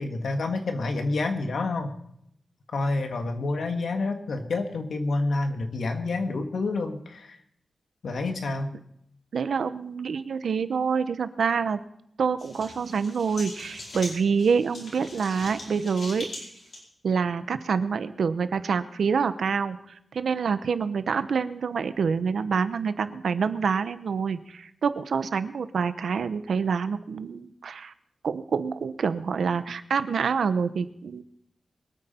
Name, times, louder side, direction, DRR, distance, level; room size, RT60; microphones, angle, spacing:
voice 1, 0.0-2.0 2.7-7.4 8.0-8.7, left 3 dB, 75° left, 5 dB, 1.7 m, -28 dB
voice 2, 9.3-11.8 12.2-16.3 17.0-19.8 20.1-27.9 28.2-31.2, right 6 dB, 80° right, 12 dB, 0.8 m, -26 dB
sound 1, 12.4-16.8, left 2 dB, 55° left, 4.8 m, -41 dB
23.5 x 9.1 x 4.3 m, 0.72 s
wide cardioid pair, 170°, 0 cm